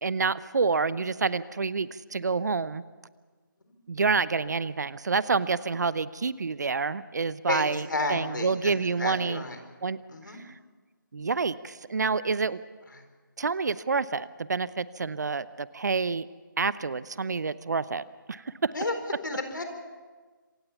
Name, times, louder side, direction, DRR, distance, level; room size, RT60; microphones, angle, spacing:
voice 1, 0.0-2.8 3.9-9.4 9.8-10.0 10.4-10.5 11.1-12.6 13.4-16.3 16.6-18.7, right 4 dB, 55° right, 18 dB, 0.7 m, -28 dB
voice 2, 7.5-8.7 9.0-9.6 10.1-10.4 12.9-13.0 18.7-18.9 19.2-19.6, left 2 dB, 65° left, 7 dB, 4.2 m, -31 dB
26.5 x 16.5 x 7.1 m, 1.4 s
figure-of-eight pair, 155°, 11 cm